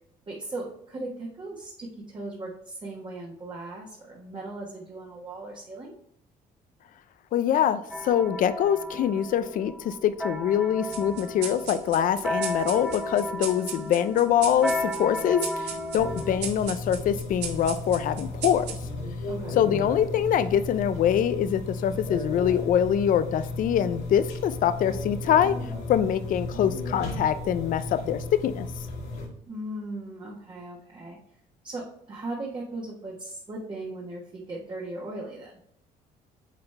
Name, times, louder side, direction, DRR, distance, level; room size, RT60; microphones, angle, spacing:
voice 1, 0.3-6.0 19.3-19.6 29.5-31.2 31.6-35.5, right 2 dB, 30° right, -2 dB, 1.3 m, -38 dB
voice 2, 7.3-18.7 19.6-25.6 25.9-28.7, left 9 dB, 55° left, 12 dB, 0.5 m, -24 dB
sound 1, 7.9-16.4, left 1 dB, 5° right, 1.3 m, -34 dB
sound 2, 10.9-19.8, right 7 dB, 85° right, 1.3 m, -39 dB
sound 3, 16.0-29.3, left 2 dB, 85° left, 2.2 m, -35 dB
8.2 x 4.0 x 3.3 m, 0.75 s
cardioid pair, 110°, 17 cm